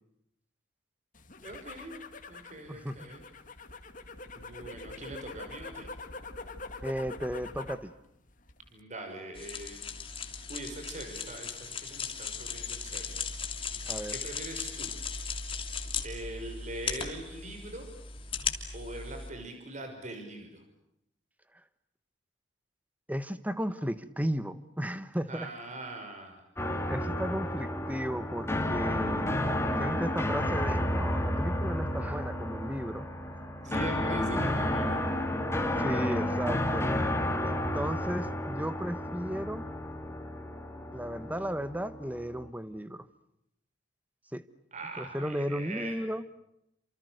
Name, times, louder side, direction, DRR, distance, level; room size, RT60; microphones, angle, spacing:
sound 1, 1.1-7.9 8.2-8.8, left 3 dB, 45° left, 2.5 m, -44 dB
voice 1, 1.4-1.9 2.3-3.2 4.4-5.9 8.7-9.8 10.5-13.1 13.7-14.9 16.0-17.9 18.7-20.6 25.3-26.4 33.6-35.1 44.7-46.0, right 1 dB, 40° right, 4 dB, 6.0 m, -42 dB
voice 2, 2.7-3.1 6.8-7.9 13.9-14.1 23.1-25.5 26.6-29.3 29.8-33.1 35.8-36.9 37.4-39.6 40.9-43.1 44.3-44.4 45.0-46.2, equal, 10° right, 13 dB, 1.3 m, -35 dB
sound 2, 9.4-19.3, left 6 dB, 30° left, 3.1 m, -37 dB
sound 3, 26.6-42.5, left 1 dB, 15° left, 2.8 m, -31 dB
29.5 x 27.0 x 6.7 m, 0.79 s
head